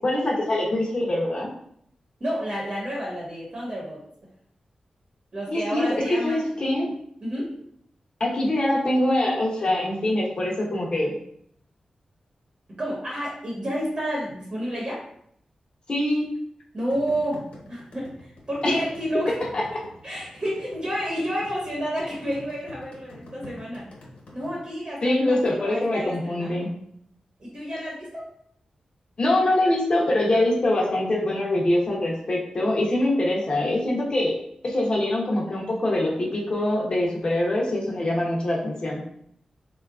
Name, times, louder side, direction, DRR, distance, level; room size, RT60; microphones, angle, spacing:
voice 1, 0.0-1.5 5.5-6.9 8.2-11.1 15.9-16.3 18.6-18.8 19.5-19.6 25.0-26.7 29.2-34.4 34.6-39.0, left 1 dB, 45° left, -2 dB, 0.6 m, -24 dB
voice 2, 2.2-4.0 5.3-6.4 7.2-7.5 12.8-15.0 16.7-17.4 17.7-19.4 20.0-23.9 24.3-26.7 27.4-28.2 38.1-38.2, equal, 40° right, -4 dB, 1.0 m, -30 dB
sound 1, 16.9-24.5, left 1 dB, 90° left, 0.9 m, -45 dB
3.6 x 2.3 x 2.4 m, 0.68 s
wide cardioid pair, 105°, 2 cm